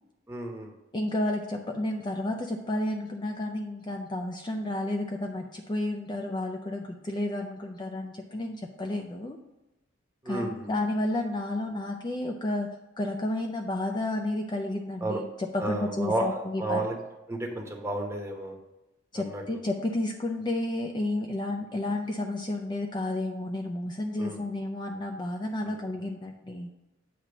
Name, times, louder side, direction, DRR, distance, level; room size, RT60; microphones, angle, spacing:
voice 1, 0.3-0.7 10.2-10.7 15.0-15.2 15.6-17.0 17.3-18.6 19.1-19.4 24.2-24.4 25.6-25.8, right 2 dB, 15° right, 1 dB, 1.0 m, -32 dB
voice 2, 0.9-9.4 10.3-16.8 19.1-26.7, left 1 dB, 25° left, 2 dB, 0.4 m, -31 dB
8.3 x 2.9 x 5.9 m, 0.98 s
head